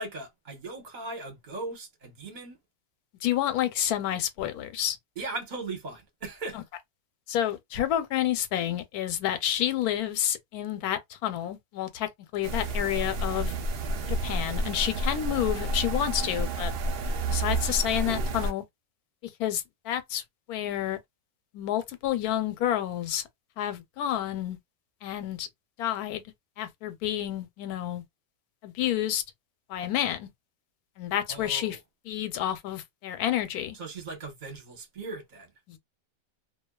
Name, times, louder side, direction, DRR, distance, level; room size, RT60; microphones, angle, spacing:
voice 1, 0.0-2.6 5.2-6.6 31.3-31.8 33.7-35.5, right 3 dB, 40° right, 0.8 m, -38 dB
voice 2, 3.2-5.0 6.5-6.6 7.3-13.5 14.1-16.7 17.3-18.6 19.2-20.2 20.5-21.0 21.5-23.2 23.6-24.6 25.0-25.5 25.8-26.2 26.6-28.0 28.6-29.2 29.7-30.3 31.0-31.8 32.0-33.8 35.7-35.8, left 11 dB, 85° left, 1.1 m, -29 dB
sound 1, 12.4-18.5, right 2 dB, 80° right, 0.5 m, -30 dB
2.5 x 2.3 x 2.2 m
omnidirectional pair, 1.6 m